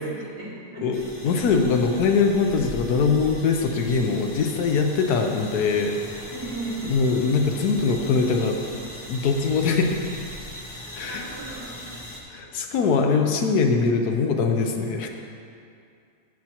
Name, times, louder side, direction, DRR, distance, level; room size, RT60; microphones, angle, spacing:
voice 1, 0.0-1.5 6.3-6.9 10.8-11.9 12.4-12.5, right 3 dB, 85° right, -7 dB, 2.5 m, -37 dB
voice 2, 0.8-6.3 6.8-8.6 9.1-9.9 10.9-11.2 12.3-15.1, left 4 dB, 75° left, 4 dB, 1.2 m, -22 dB
sound 1, 0.9-12.2, left 1 dB, 20° left, 0.6 m, -40 dB
14.0 x 5.9 x 2.9 m, 2.4 s
omnidirectional pair, 1.7 m